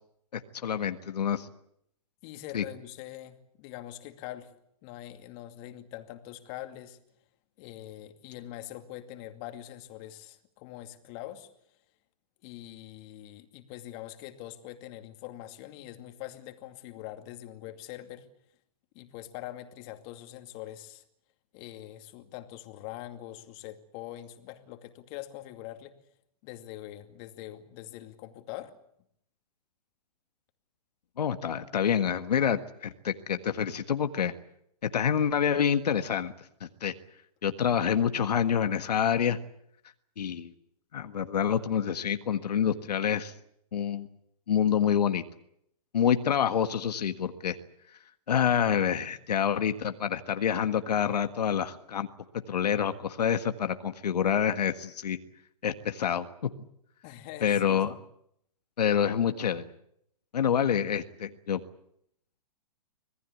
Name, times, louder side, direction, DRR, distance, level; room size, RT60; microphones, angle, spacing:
voice 1, 0.3-1.5 2.5-2.6 31.2-34.3 34.9-36.3 36.6-36.9 37.4-39.4 40.2-40.5 40.9-43.3 43.7-44.1 44.5-45.2 45.9-47.6 48.3-52.1 52.5-55.2 55.6-56.5 57.4-58.0 58.8-59.7 60.3-61.6, left 8 dB, 80° left, 8 dB, 1.6 m, -27 dB
voice 2, 2.2-4.5 4.8-7.0 7.6-11.5 12.4-18.3 18.9-21.0 21.5-25.9 26.4-28.8 57.0-57.8, left 14 dB, 40° left, 7 dB, 2.5 m, -43 dB
26.0 x 19.0 x 8.4 m, 0.74 s
hypercardioid pair, 140°, 20 cm